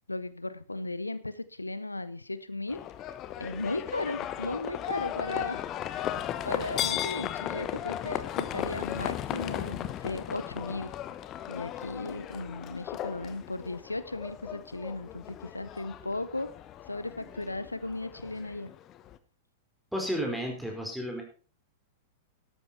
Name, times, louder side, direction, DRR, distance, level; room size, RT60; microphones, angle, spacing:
voice 1, 0.1-2.8 3.4-5.6 6.4-10.9 11.5-16.5 16.9-18.7, left 2 dB, 85° left, 15 dB, 0.7 m, -36 dB
Livestock farm animals working animals, 2.7-19.2, left 11 dB, 30° left, 1.0 m, -36 dB
voice 2, 19.9-21.2, equal, ahead, 0 dB, 4.6 m, -32 dB
12.5 x 11.5 x 4.3 m, 0.38 s
figure-of-eight pair, 100°, 0 cm